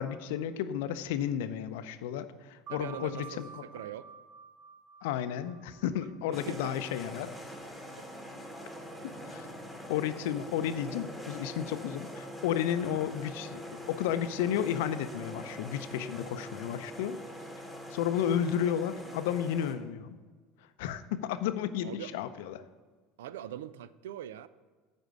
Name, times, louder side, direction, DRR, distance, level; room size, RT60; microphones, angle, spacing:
voice 1, 0.0-3.5 5.0-7.3 9.3-9.5 9.9-17.2 17.9-20.2 20.8-22.6, left 9 dB, 70° left, 11 dB, 0.5 m, -32 dB
sound 1, 2.7-7.8, right 6 dB, 50° right, 0.8 m, -51 dB
voice 2, 2.7-4.1 6.3-6.8 8.0-8.1 21.8-22.1 23.2-24.5, right 11 dB, 80° right, 16 dB, 0.3 m, -42 dB
sound 2, 6.3-19.7, equal, 10° right, 1.8 m, -44 dB
9.5 x 4.4 x 6.3 m, 1.4 s
hypercardioid pair, 75°, 0 cm